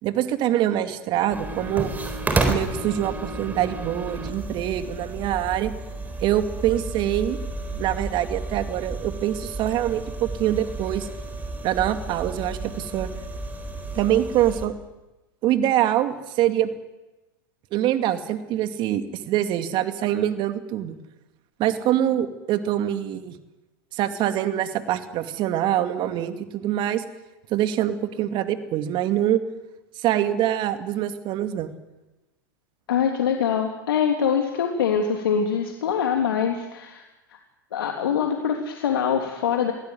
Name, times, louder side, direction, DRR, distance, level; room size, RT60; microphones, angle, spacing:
voice 1, 0.0-1.9 2.5-5.7 6.2-7.4 7.7-11.1 11.6-13.1 13.9-14.7 15.4-16.7 17.7-21.0 21.6-23.3 23.9-27.0 27.5-29.4 30.0-31.7, right 12 dB, 40° right, 9 dB, 2.4 m, -24 dB
sound 1, 1.3-14.7, right 2 dB, 15° right, 4.1 m, -31 dB
voice 2, 32.9-37.0 37.7-39.7, left 7 dB, 80° left, 3 dB, 3.2 m, -24 dB
23.0 x 16.5 x 9.4 m, 1.0 s
hypercardioid pair, 110°, 12 cm